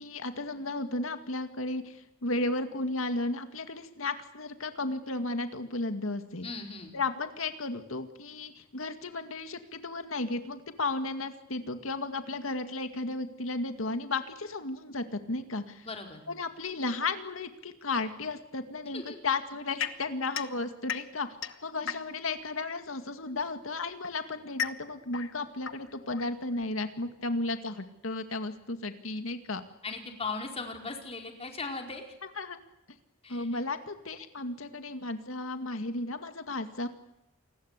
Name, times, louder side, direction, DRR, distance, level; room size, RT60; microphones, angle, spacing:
voice 1, 0.0-6.5 6.9-15.9 16.3-21.3 21.6-29.6 32.4-32.6 33.3-36.9, left 3 dB, 85° left, 8 dB, 2.1 m, -34 dB
voice 2, 6.4-6.9 15.8-16.2 18.9-19.2 21.8-21.9 29.8-32.0 33.2-33.6, left 4 dB, 30° left, 3 dB, 4.6 m, -38 dB
sound 1, 19.8-22.4 23.4-26.8, left 7 dB, 65° left, 1.2 m, -38 dB
28.5 x 20.5 x 8.2 m, 0.92 s
head